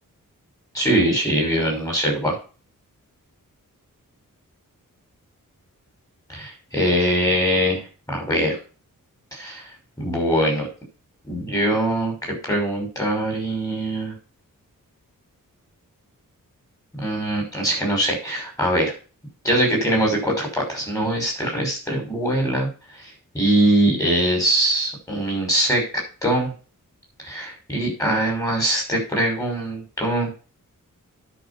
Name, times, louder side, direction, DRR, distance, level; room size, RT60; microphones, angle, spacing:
voice 1, 0.7-2.3 6.3-7.8 8.1-8.6 9.3-9.7 10.0-10.7 11.3-14.1 17.0-18.9 19.4-22.7 23.3-25.8 26.2-26.5 27.2-30.3, right 1 dB, 10° left, 0 dB, 5.8 m, -22 dB
10.0 x 6.2 x 7.0 m, 0.35 s
wide cardioid pair, 180°, 33 cm